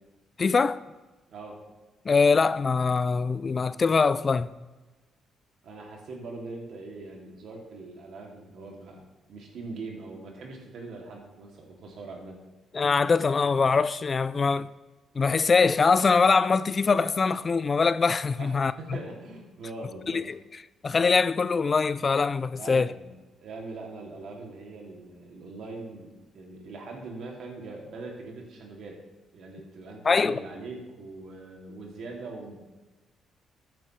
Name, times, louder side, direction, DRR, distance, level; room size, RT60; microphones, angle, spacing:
voice 1, 0.4-0.8 2.1-4.5 12.7-14.7 15.2-18.7 20.1-20.4 20.8-22.9 30.0-30.4, left 4 dB, 35° left, 0.4 m, -23 dB
voice 2, 1.3-1.6 5.6-12.4 18.4-20.2 22.6-23.2 23.4-29.0 29.3-32.6, right 3 dB, 70° right, 2.6 m, -42 dB
13.5 x 9.3 x 3.2 m
cardioid pair, 90°, 0 cm